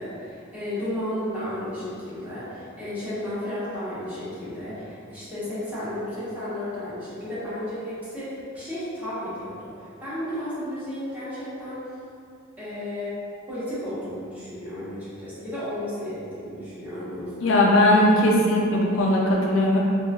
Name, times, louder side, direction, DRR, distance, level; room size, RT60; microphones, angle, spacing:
voice 1, 0.0-11.8 12.6-13.2 13.5-17.6, left 1 dB, 10° right, -13 dB, 0.9 m, -33 dB
voice 2, 17.4-19.8, left 1 dB, 65° left, -2 dB, 0.4 m, -19 dB
3.0 x 2.3 x 2.3 m, 2.4 s
head